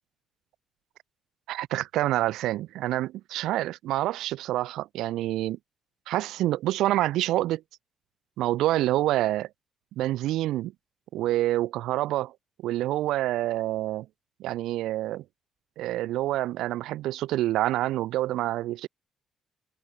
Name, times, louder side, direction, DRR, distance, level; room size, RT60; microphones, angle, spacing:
voice 1, 1.5-5.6 6.1-7.6 8.4-9.5 10.0-10.7 11.1-12.3 12.6-14.1 14.4-15.2 15.8-18.9, right 15 dB, 90° right, 0.6 m, -27 dB
cardioid pair, 90°, 0 cm